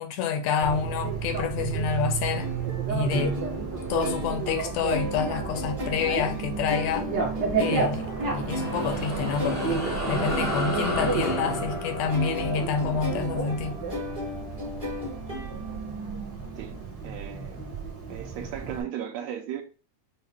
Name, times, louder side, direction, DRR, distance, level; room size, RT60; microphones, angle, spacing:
voice 1, 0.0-2.5 2.9-3.3 3.9-7.1 7.6-13.8, left 6 dB, 80° left, 1.6 m, -28 dB
Bicycle, 0.6-18.8, right 5 dB, 50° right, 1.2 m, -32 dB
sound 1, 2.3-16.0, left 1 dB, 25° right, 1.1 m, -36 dB
sound 2, 8.3-15.2, left 1 dB, 20° left, 0.4 m, -34 dB
voice 2, 16.6-17.6 18.1-19.6, right 10 dB, 75° right, 1.6 m, -36 dB
6.1 x 2.1 x 3.4 m
omnidirectional pair, 3.5 m